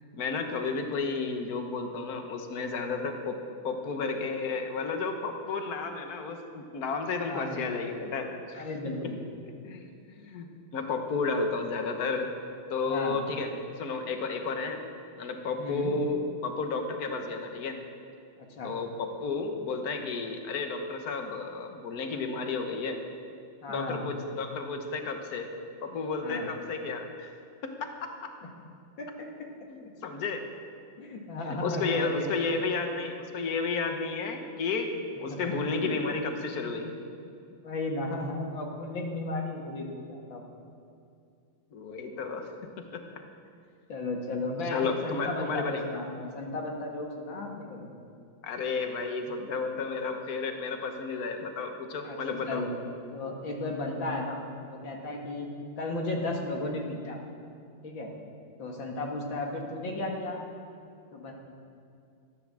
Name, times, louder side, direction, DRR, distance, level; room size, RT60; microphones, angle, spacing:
voice 1, 0.0-3.4 3.6-8.7 9.0-9.1 9.4-10.5 10.7-12.3 12.7-13.5 13.8-14.8 15.2-17.8 18.6-23.0 23.7-25.5 25.8-27.3 27.6-28.3 29.7-30.4 31.6-36.9 41.7-43.2 44.7-45.8 48.4-52.6, left 4 dB, 50° left, 5 dB, 1.6 m, -32 dB
voice 2, 7.2-7.7 8.6-9.2 12.9-13.2 15.6-15.9 18.4-18.7 23.6-24.0 26.2-26.5 29.0-29.1 31.0-32.4 35.2-35.5 35.8-36.0 37.2-37.3 37.6-40.4 43.9-47.9 52.0-52.8 53.1-54.4 54.7-55.5 55.8-57.2 57.8-58.1 58.6-60.4 61.1-61.3, left 2 dB, 70° left, 0 dB, 2.6 m, -34 dB
14.0 x 9.8 x 7.5 m, 2.4 s
omnidirectional pair, 2.2 m